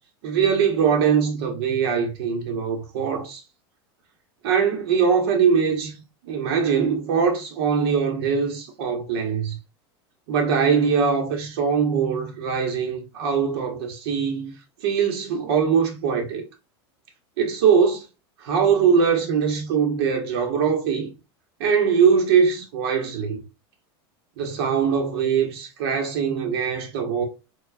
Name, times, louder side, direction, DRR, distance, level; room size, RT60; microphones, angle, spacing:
voice 1, 0.2-3.4 4.4-5.9 6.3-9.6 10.3-14.5 14.8-16.4 17.4-18.1 18.4-21.1 21.6-23.4 24.4-27.2, right 6 dB, 70° right, 1.0 m, -22 dB
4.4 x 2.3 x 2.5 m
supercardioid pair, 115°, 14 cm